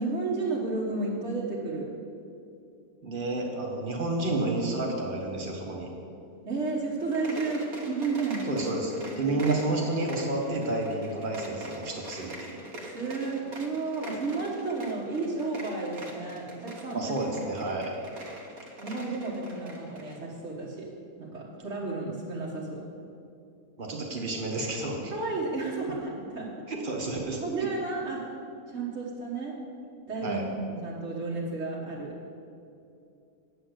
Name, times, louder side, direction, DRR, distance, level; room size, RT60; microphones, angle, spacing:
voice 1, 0.0-1.9 6.5-8.5 9.2-9.4 12.8-17.6 18.8-20.9 21.2-22.8 25.1-26.5 27.4-28.2 28.7-29.6 30.1-32.1, right 3 dB, 55° right, -6 dB, 1.7 m, -32 dB
voice 2, 3.0-5.9 8.5-12.6 16.9-18.0 23.8-25.1 26.7-27.4 30.2-30.4, right 2 dB, 35° right, -1 dB, 1.7 m, -30 dB
sound 1, 7.0-20.2, right 1 dB, 80° right, 1.8 m, -44 dB
9.3 x 6.6 x 8.1 m, 2.6 s
omnidirectional pair, 1.5 m